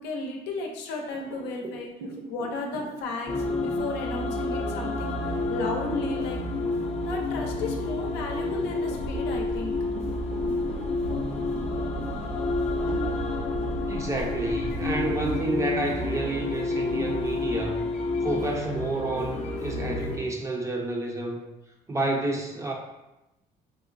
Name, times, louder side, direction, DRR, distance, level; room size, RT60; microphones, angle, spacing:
voice 1, 0.0-1.9 2.3-5.1 5.5-6.4 7.0-9.8, left 3 dB, 85° left, 1 dB, 0.6 m, -34 dB
sound 1, 1.1-6.2 6.7-6.9 7.4-8.2 8.7-15.4, right 2 dB, 60° right, 0.8 m, -41 dB
sound 2, 3.3-20.2, left 2 dB, 40° left, 0.5 m, -29 dB
sound 3, 8.9-15.4, equal, 85° right, 0.5 m, -39 dB
voice 2, 13.9-17.9 18.2-21.4 21.9-22.7, right 2 dB, 15° right, 1 dB, 0.5 m, -29 dB
3.6 x 2.1 x 2.5 m, 0.94 s
cardioid pair, 110°, 17 cm